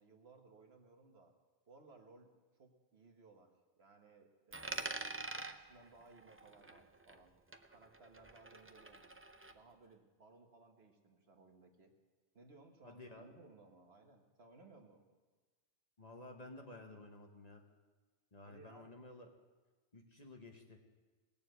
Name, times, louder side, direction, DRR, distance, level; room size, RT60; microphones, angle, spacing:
voice 1, 0.0-1.3 1.7-3.5 3.8-7.3 7.7-11.9 12.3-15.0 18.4-18.9, right 3 dB, 60° right, 3 dB, 1.6 m, -62 dB
Coin (dropping), 4.5-7.3 7.5-9.5, right 2 dB, 20° right, 0.3 m, -46 dB
voice 2, 12.8-13.3 16.0-17.6 18.3-19.3 19.9-20.9, left 2 dB, 35° left, 3 dB, 1.3 m, -53 dB
18.5 x 7.0 x 8.0 m, 1.3 s
omnidirectional pair, 1.2 m